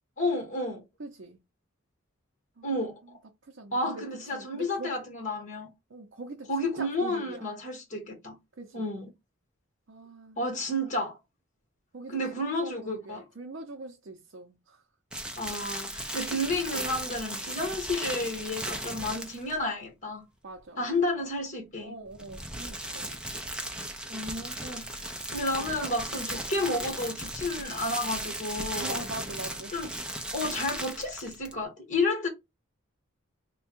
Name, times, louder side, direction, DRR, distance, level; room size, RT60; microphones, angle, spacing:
voice 1, 0.2-0.8 2.6-3.2 3.7-5.7 6.5-8.4 8.7-9.1 10.4-11.2 12.1-13.2 15.4-20.3 20.8-21.9 24.1-25.0 25.3-29.0 29.7-29.9 30.3-32.3, left 2 dB, 35° left, 1.4 m, -31 dB
voice 2, 1.0-1.4 2.6-2.8 3.4-5.1 5.9-7.5 8.5-8.9 9.9-10.4 11.9-14.8 20.4-20.9 21.8-23.2 25.6-25.8 28.8-29.7, right 2 dB, 60° right, 0.6 m, -43 dB
sound 1, 15.1-19.6 22.1-31.6, right 1 dB, 5° right, 0.6 m, -36 dB
3.4 x 2.3 x 4.4 m
head